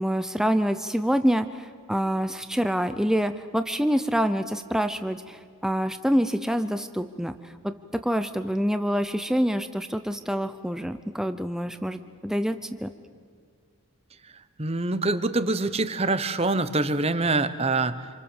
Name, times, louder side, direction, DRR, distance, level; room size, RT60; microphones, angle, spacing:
voice 1, 0.0-7.7 8.0-12.6 12.8-12.9, equal, ahead, 9 dB, 0.7 m, -26 dB
voice 2, 14.6-18.1, right 2 dB, 25° right, 13 dB, 1.0 m, -25 dB
28.0 x 26.5 x 7.3 m, 2.1 s
head